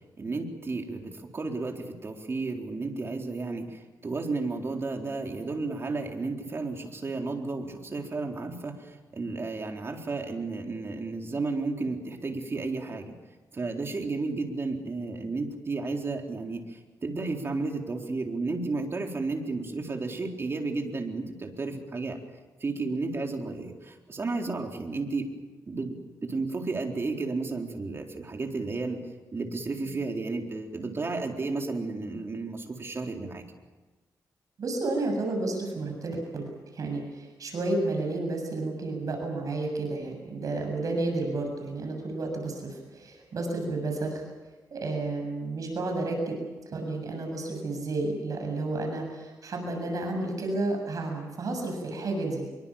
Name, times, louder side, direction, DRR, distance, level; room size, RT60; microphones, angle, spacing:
voice 1, 0.2-8.8 9.1-13.1 13.5-16.6 17.0-22.2 22.6-25.3 25.7-25.9 26.2-29.0 29.3-33.4, right 3 dB, 40° right, 2 dB, 4.0 m, -32 dB
voice 2, 34.6-44.2 44.7-46.2 46.7-52.4, right 2 dB, 60° right, 3 dB, 7.3 m, -31 dB
25.5 x 23.5 x 7.3 m, 1.2 s
cardioid pair, 105°, 7 cm